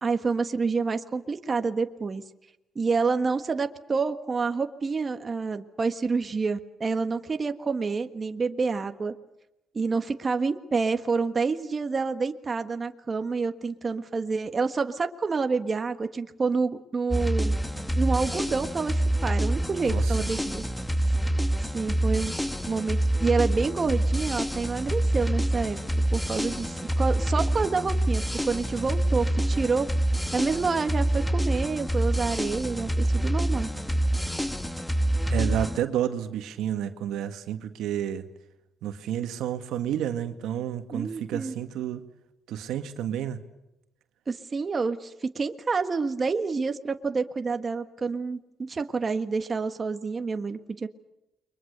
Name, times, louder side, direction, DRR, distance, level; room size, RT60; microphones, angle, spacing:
voice 1, 0.0-2.2 2.7-9.1 9.7-17.6 18.0-20.6 21.7-22.3 22.7-25.8 26.1-29.9 30.3-33.7 40.9-41.5 44.3-50.9, right 4 dB, 35° right, 7 dB, 1.5 m, -28 dB
sound 1, 17.1-35.8, right 1 dB, 5° left, 1.5 m, -26 dB
voice 2, 35.3-38.3 38.8-42.0 42.5-43.4, right 10 dB, 85° right, 7 dB, 1.9 m, -30 dB
29.5 x 23.5 x 6.8 m, 0.91 s
cardioid pair, 90°, 0 cm